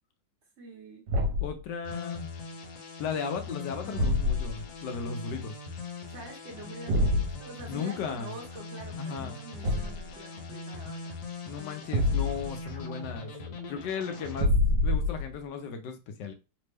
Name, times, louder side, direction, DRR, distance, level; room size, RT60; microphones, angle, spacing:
voice 1, 0.6-1.0 6.1-11.1, right 2 dB, 50° right, 0.8 m, -46 dB
Thump thud, 1.1-1.6 3.9-4.6 6.9-7.3 9.6-10.1 11.9-12.6 14.3-15.3, left 2 dB, 70° right, 1.3 m, -26 dB
voice 2, 1.4-2.3 3.0-5.5 7.7-8.3 9.0-9.4 11.4-13.3 13.7-14.5 14.8-16.3, left 6 dB, 75° left, 1.1 m, -36 dB
sound 1, 1.8-14.4, left 3 dB, 90° left, 1.5 m, -41 dB
3.3 x 2.0 x 3.3 m
omnidirectional pair, 2.0 m